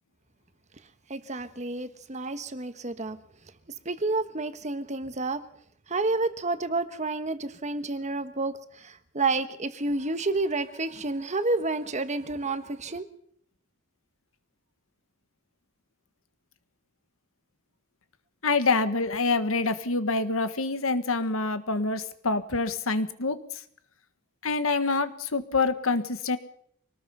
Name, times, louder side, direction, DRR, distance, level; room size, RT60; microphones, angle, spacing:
voice 1, 1.1-3.2 3.8-5.4 5.9-8.5 9.1-13.0, right 3 dB, 35° right, 11 dB, 1.3 m, -29 dB
voice 2, 18.4-23.4 24.4-26.4, left 3 dB, 80° left, 11 dB, 1.5 m, -26 dB
25.0 x 19.0 x 5.6 m, 0.67 s
head